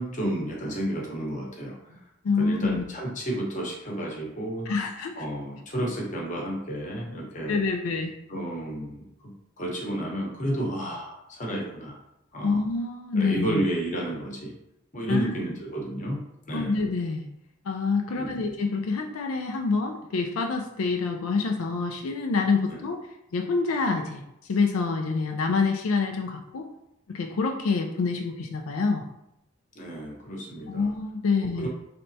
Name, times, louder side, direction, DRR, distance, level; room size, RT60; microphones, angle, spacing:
voice 1, 0.0-2.0 2.4-4.7 5.2-7.6 8.3-12.0 12.3-12.6 13.1-14.5 14.9-16.2 16.5-16.8 18.1-18.4 22.7-22.8 29.7-30.9 31.4-31.7, right 1 dB, 35° left, -1 dB, 0.9 m, -31 dB
voice 2, 2.2-2.8 4.7-5.2 7.5-8.1 12.4-13.6 15.1-15.3 16.5-17.3 17.7-23.0 23.3-24.2 24.5-26.7 27.1-29.0 30.7-31.7, left 4 dB, 90° left, 4 dB, 0.4 m, -26 dB
4.2 x 3.3 x 2.7 m, 0.84 s
head